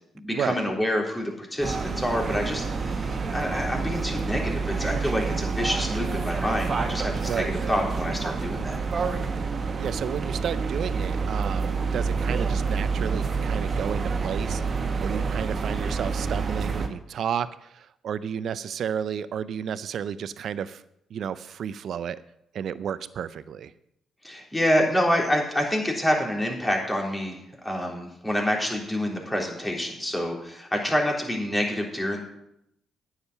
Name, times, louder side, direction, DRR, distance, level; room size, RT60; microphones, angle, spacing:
voice 1, 0.1-8.8 24.2-32.2, equal, 15° left, 0 dB, 3.6 m, -27 dB
sound 1, 1.6-16.9, right 4 dB, 50° right, 1.3 m, -28 dB
voice 2, 7.2-7.5 9.8-20.8 21.1-22.2 22.5-23.7, right 8 dB, 65° right, 16 dB, 0.5 m, -32 dB
9.6 x 7.3 x 6.7 m, 0.79 s
supercardioid pair, 50°, 0 cm